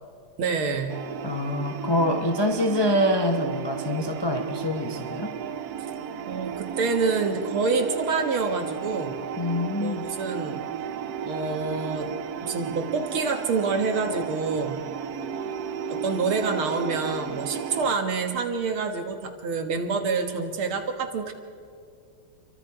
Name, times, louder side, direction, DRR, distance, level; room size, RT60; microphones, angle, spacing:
voice 1, 0.4-1.0 6.3-9.2 9.8-10.6 11.2-12.1 12.4-14.8 15.9-21.3, right 4 dB, 75° right, 5 dB, 2.4 m, -27 dB
sound 1, 0.9-18.0, right 7 dB, 60° right, 1.1 m, -34 dB
voice 2, 1.2-5.3 9.4-10.1, left 1 dB, 25° left, 3 dB, 0.5 m, -25 dB
29.0 x 23.5 x 4.8 m, 2.4 s
omnidirectional pair, 2.3 m